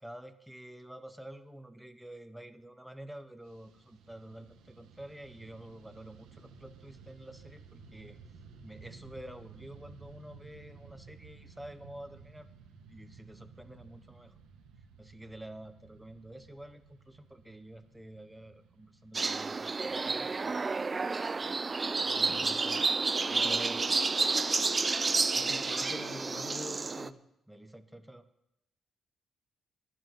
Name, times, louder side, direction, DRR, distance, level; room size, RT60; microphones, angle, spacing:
voice 1, 0.0-8.2 8.6-12.5 12.9-14.3 15.0-20.7 21.4-23.0 23.3-24.0 27.5-28.3, right 1 dB, 5° right, 10 dB, 0.9 m, -49 dB
Fixed-wing aircraft airplane, 3.4-20.9, right 4 dB, 90° right, 1.4 m, -55 dB
sound 1, 19.1-27.1, right 4 dB, 30° right, 0.4 m, -30 dB
voice 2, 25.0-27.2, left 3 dB, 50° left, 3 dB, 2.1 m, -46 dB
11.0 x 6.4 x 9.2 m, 0.83 s
cardioid pair, 90°, 0 cm